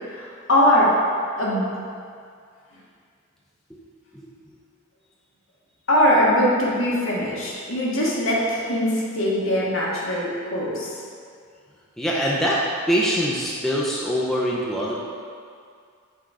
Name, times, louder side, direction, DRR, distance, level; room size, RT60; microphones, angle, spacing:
voice 1, 0.1-0.9 1.4-1.7 5.9-10.9, equal, 65° left, -4 dB, 1.2 m, -21 dB
voice 2, 12.0-14.9, equal, ahead, -5 dB, 0.5 m, -23 dB
5.9 x 3.9 x 4.7 m, 2.3 s
head